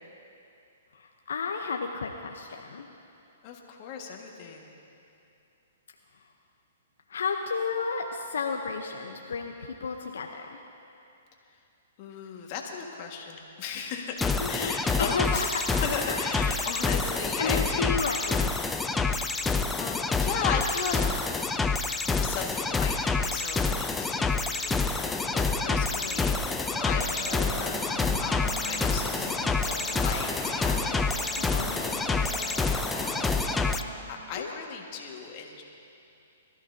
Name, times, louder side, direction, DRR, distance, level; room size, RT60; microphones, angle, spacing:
voice 1, 0.9-2.9 7.1-10.6 14.4-15.6 16.1-16.3 17.4-18.8 25.7-26.2 31.4-31.9 34.3-34.5, left 5 dB, 80° left, 3 dB, 0.8 m, -33 dB
voice 2, 3.4-4.7 12.0-18.0 18.8-19.4 19.8-21.0 22.0-31.0 31.4-35.6, left 6 dB, 40° left, 1 dB, 1.7 m, -37 dB
sound 1, 14.2-33.8, left 4 dB, 10° left, 0.5 m, -28 dB
sound 2, 14.2-17.7, right 4 dB, 45° right, 1.5 m, -45 dB
sound 3, 24.9-33.7, right 2 dB, 25° right, 2.4 m, -40 dB
22.0 x 14.0 x 2.8 m, 2.7 s
hypercardioid pair, 130°, 0 cm